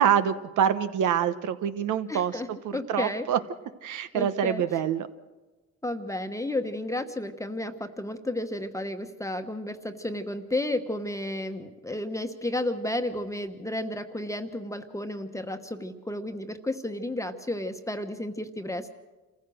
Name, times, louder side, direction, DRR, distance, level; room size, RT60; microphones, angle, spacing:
voice 1, 0.0-3.4 3.8-5.1, right 9 dB, 75° right, 11 dB, 1.1 m, -26 dB
voice 2, 2.1-3.3 4.1-4.6 5.8-18.9, left 1 dB, 10° left, 6 dB, 1.2 m, -32 dB
27.0 x 15.0 x 6.4 m, 1.2 s
cardioid pair, 90°, 30 cm